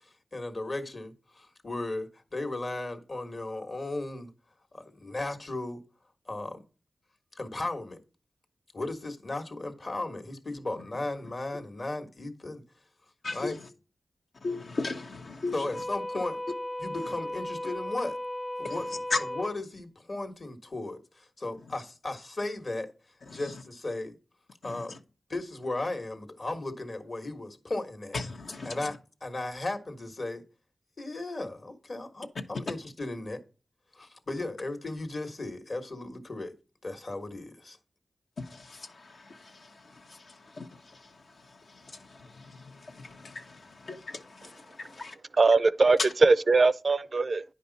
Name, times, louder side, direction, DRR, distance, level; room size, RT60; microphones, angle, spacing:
voice 1, 0.3-4.3 4.7-5.8 6.3-6.6 7.3-8.0 8.7-12.6 13.3-13.6 15.5-16.4 16.8-18.2 18.6-22.9 23.3-24.1 24.6-25.0 25.3-28.1 28.6-30.4 31.0-33.4 33.9-36.5 36.8-37.8, left 2 dB, 50° left, 1.5 m, -36 dB
voice 2, 13.2-13.7 14.4-15.7 18.6-18.8 19.1-19.2 23.3-23.5 24.6-25.0 28.1-28.9 38.4-45.2, left 3 dB, 75° left, 1.2 m, -38 dB
sound 1, 15.7-19.5, left 1 dB, 20° left, 0.5 m, -36 dB
voice 3, 45.4-47.4, right 3 dB, 55° right, 0.4 m, -21 dB
9.9 x 5.3 x 4.1 m
cardioid pair, 55°, 0 cm